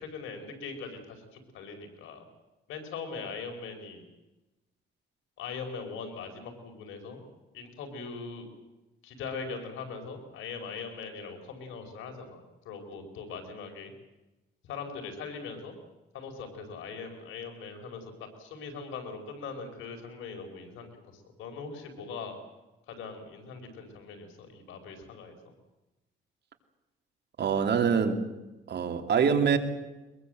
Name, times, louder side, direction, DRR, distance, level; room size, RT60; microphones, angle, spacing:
voice 1, 0.0-2.2 2.7-4.1 5.4-7.2 7.5-8.5 9.0-13.9 14.6-15.7 16.1-18.1 18.4-22.4 22.9-25.4, left 5 dB, 90° left, 5.1 m, -41 dB
voice 2, 27.4-28.2 28.7-29.6, right 6 dB, 60° right, 3.1 m, -24 dB
23.0 x 22.0 x 7.9 m
cardioid pair, 90°, 20 cm